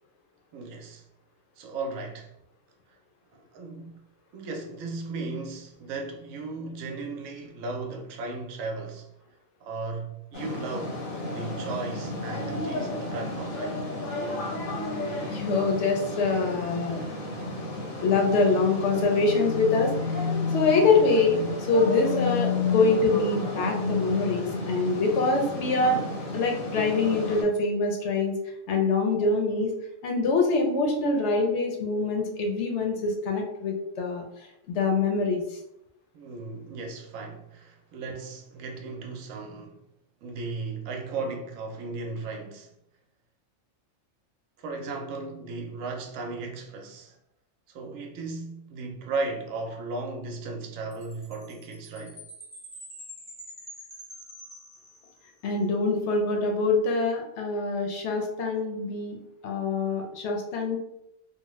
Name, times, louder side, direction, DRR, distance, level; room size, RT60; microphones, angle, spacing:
voice 1, 0.5-1.0 1.6-2.3 2.9-3.0 3.3-4.0 4.3-9.1 9.6-11.0 11.3-13.8 36.1-39.8 40.2-42.7 44.6-47.2 47.7-52.2, right 3 dB, 85° right, 1.0 m, -36 dB
sound 1, 10.3-27.4, left 3 dB, 90° left, 1.2 m, -31 dB
voice 2, 14.9-17.0 18.0-20.2 20.5-26.0 26.3-28.3 28.7-29.7 30.0-34.2 34.7-35.6 55.4-59.2 59.4-60.8, left 3 dB, 65° left, 0.8 m, -25 dB
Chime, 50.9-55.4, equal, 5° left, 0.5 m, -46 dB
2.8 x 2.0 x 3.0 m
omnidirectional pair, 1.4 m